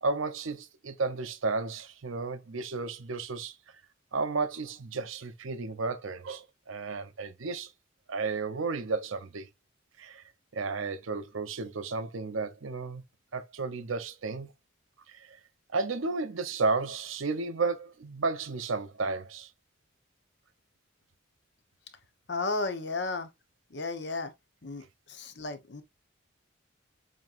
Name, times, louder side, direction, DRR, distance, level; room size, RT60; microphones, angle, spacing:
voice 1, 0.0-3.5 4.1-7.7 8.1-9.5 10.0-10.2 10.5-13.0 13.3-14.5 15.1-15.4 15.7-19.5, right 4 dB, 80° right, 0.7 m, -33 dB
voice 2, 22.3-23.3 23.7-24.3 24.6-25.8, left 3 dB, 55° left, 0.8 m, -34 dB
7.3 x 2.9 x 2.5 m
head